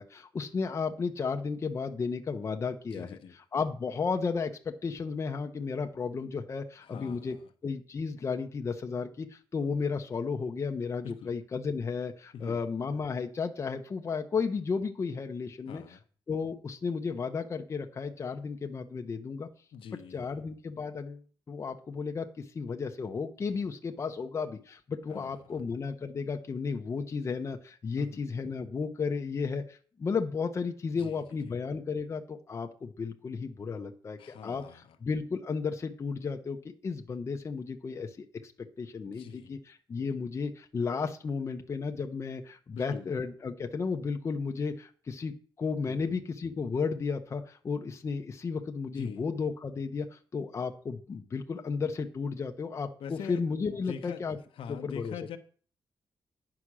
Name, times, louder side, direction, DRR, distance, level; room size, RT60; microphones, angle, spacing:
voice 1, 0.0-3.2 3.5-7.4 7.6-15.8 16.3-19.5 20.1-36.6 36.8-38.3 38.8-54.4 54.7-55.1, left 5 dB, 30° left, 4 dB, 0.9 m, -33 dB
voice 2, 2.9-3.3 6.8-7.4 11.0-11.3 12.3-12.6 15.7-16.0 19.7-20.4 25.1-25.6 28.0-28.2 30.9-31.2 31.4-31.6 34.2-35.0 39.2-39.5 42.7-43.1 45.9-46.0 49.0-49.2 53.0-53.4 53.9-54.2 54.6-55.4, left 7 dB, 80° left, 7 dB, 1.0 m, -43 dB
10.0 x 6.0 x 6.1 m, 0.42 s
wide cardioid pair, 175°, 9 cm